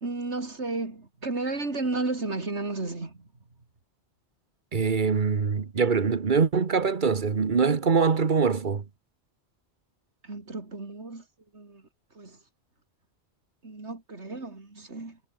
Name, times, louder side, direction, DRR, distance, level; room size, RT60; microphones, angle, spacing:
voice 1, 0.0-3.3 10.2-11.2 11.5-11.8 12.2-12.4 13.6-15.2, right 3 dB, 85° right, 3.7 m, -33 dB
voice 2, 4.7-8.8, right 5 dB, 45° right, 1.3 m, -23 dB
omnidirectional pair, 1.1 m